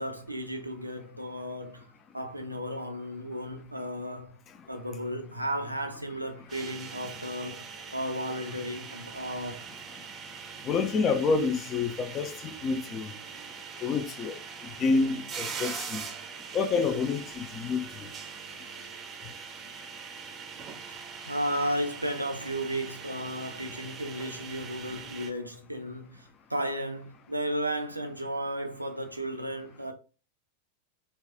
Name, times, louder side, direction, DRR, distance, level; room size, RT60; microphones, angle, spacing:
voice 1, 0.0-4.4 4.7-7.7 7.9-9.7 21.2-29.9, equal, 85° right, 0.5 m, -34 dB
sound 1, 6.5-25.3, right 6 dB, 25° right, 0.6 m, -42 dB
voice 2, 10.7-13.1 13.8-14.3 14.8-16.0 16.5-17.8, left 4 dB, 30° left, 0.5 m, -28 dB
4.1 x 2.3 x 3.3 m
figure-of-eight pair, 90°, 0 cm